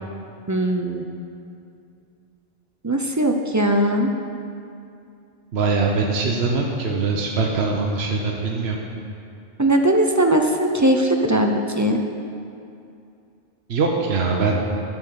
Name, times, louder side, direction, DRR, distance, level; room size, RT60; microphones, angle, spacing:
voice 1, 0.5-1.0 2.8-4.1 9.6-12.0, right 1 dB, 25° right, 3 dB, 0.4 m, -19 dB
voice 2, 5.5-8.8 13.7-14.6, right 4 dB, 80° right, 0 dB, 1.1 m, -22 dB
12.5 x 4.3 x 6.6 m, 2.6 s
omnidirectional pair, 1.1 m